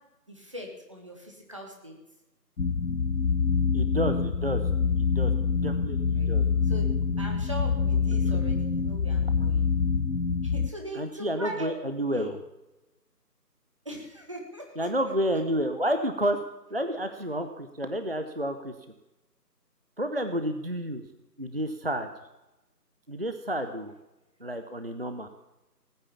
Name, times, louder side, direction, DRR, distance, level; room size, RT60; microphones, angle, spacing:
voice 1, 0.3-2.0 6.1-6.3 6.6-6.9 7.2-9.6 10.4-11.7 12.1-12.3 13.8-15.4, equal, 20° right, 1 dB, 1.6 m, -40 dB
sound 1, 2.6-10.7, left 5 dB, 80° left, 1.0 m, -25 dB
voice 2, 3.7-4.6 5.0-5.3 5.6-6.5 8.3-8.4 10.9-12.3 14.8-16.4 16.7-18.7 20.0-21.0 21.4-22.1 23.1-23.9 24.4-25.3, equal, 35° right, 8 dB, 0.7 m, -30 dB
18.0 x 9.2 x 7.0 m, 0.98 s
figure-of-eight pair, 170°, 49 cm